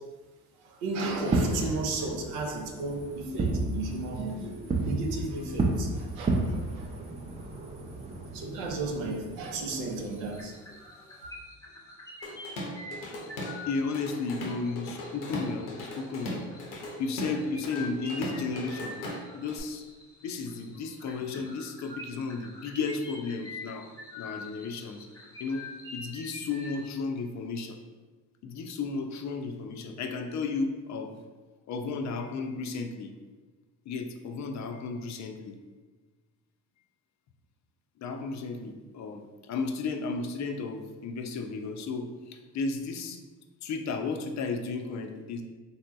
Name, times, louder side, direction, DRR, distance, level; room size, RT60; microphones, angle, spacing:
voice 1, 0.6-6.9 8.3-10.5, right 3 dB, 85° right, 2 dB, 0.6 m, -34 dB
Fireworks, 1.1-10.4, right 2 dB, 15° right, 0.5 m, -32 dB
sound 1, 9.5-9.8 10.0-26.8, left 2 dB, 10° left, 0.8 m, -46 dB
Drum kit / Drum, 12.2-13.6 13.9-19.6, left 1 dB, 90° left, 0.7 m, -38 dB
voice 2, 13.7-16.4 17.0-19.0 19.3-19.8 20.2-23.9 24.2-25.1 25.4-25.6 25.9-27.8 28.4-31.2 31.7-33.1 33.9-35.6 38.0-43.2 43.6-45.4, left 4 dB, 45° left, 5 dB, 0.4 m, -34 dB
3.5 x 2.7 x 2.3 m, 1.3 s
hypercardioid pair, 60°, 39 cm